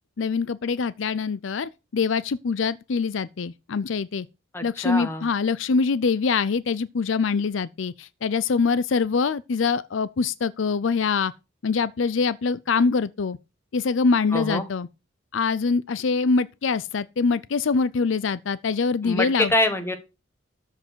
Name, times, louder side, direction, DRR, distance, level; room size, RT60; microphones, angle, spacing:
voice 1, 0.2-4.3 4.6-11.3 11.6-13.4 13.7-14.9 15.3-19.5, left 4 dB, 70° left, 0.5 m, -24 dB
voice 2, 4.5-5.3 14.3-14.7 19.0-19.9, left 1 dB, 10° left, 1.5 m, -25 dB
13.5 x 4.8 x 6.2 m
head